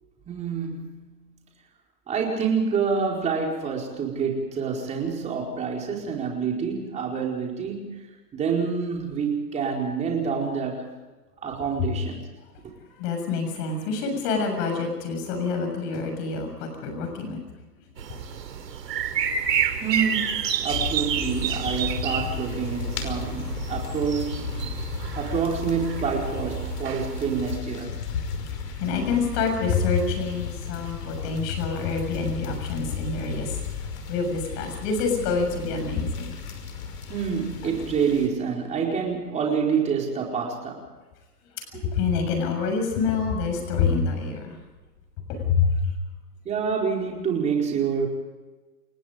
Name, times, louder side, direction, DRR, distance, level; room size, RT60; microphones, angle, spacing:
voice 1, 0.3-1.2 2.1-8.0 8.3-10.9 11.4-12.2 19.8-24.4 25.1-28.0 31.2-31.4 37.1-40.9 41.7-41.9 46.4-48.1, right 6 dB, 15° right, 0 dB, 4.6 m, -27 dB
voice 2, 13.0-17.4 18.1-18.2 24.5-24.7 28.5-33.6 34.1-36.4 37.6-37.8 41.8-44.6 45.3-45.9, left 5 dB, 30° left, 5 dB, 7.0 m, -27 dB
sound 1, 18.0-27.6, right 8 dB, 85° right, 3.9 m, -30 dB
sound 2, 20.7-38.3, left 6 dB, 70° left, 5.5 m, -34 dB
29.5 x 17.5 x 5.2 m, 1.2 s
hypercardioid pair, 160°, 48 cm